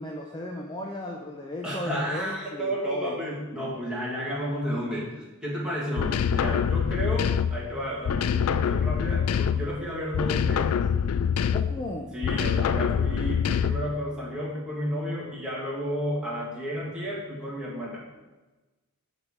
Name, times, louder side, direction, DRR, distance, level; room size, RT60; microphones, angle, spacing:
voice 1, 0.0-3.1 11.5-12.1, left 1 dB, 20° left, 0 dB, 0.5 m, -36 dB
voice 2, 1.6-5.2 5.4-10.8 12.1-18.0, equal, 5° right, -6 dB, 2.0 m, -32 dB
sound 1, 6.0-7.7 8.0-9.8 10.1-11.9 12.2-13.9, left 7 dB, 70° left, 0.3 m, -25 dB
8.6 x 4.2 x 4.6 m, 1.2 s
head